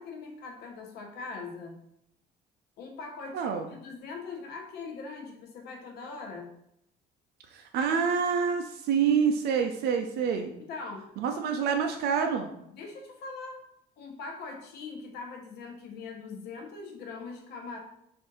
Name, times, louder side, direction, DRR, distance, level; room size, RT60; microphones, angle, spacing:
voice 1, 0.0-1.8 2.8-6.5 10.6-11.1 12.7-13.6 14.0-17.8, left 4 dB, 75° left, 3 dB, 0.7 m, -41 dB
voice 2, 3.3-3.7 7.5-10.5 11.2-12.5, right 6 dB, 75° right, 4 dB, 0.4 m, -27 dB
2.5 x 2.4 x 3.8 m, 0.76 s
cardioid pair, 110°, 17 cm